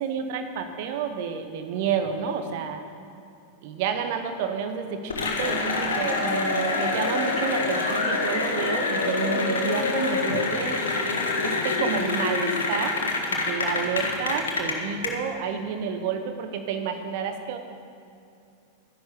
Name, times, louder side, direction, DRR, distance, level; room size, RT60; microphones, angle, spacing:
voice 1, 0.0-2.8 3.6-10.7 11.4-17.6, right 6 dB, 50° right, 7 dB, 1.2 m, -30 dB
Cheering / Applause, 5.1-15.1, left 3 dB, 70° left, 1.6 m, -26 dB
12.5 x 10.5 x 5.1 m, 2.6 s
figure-of-eight pair, 90°, 0 cm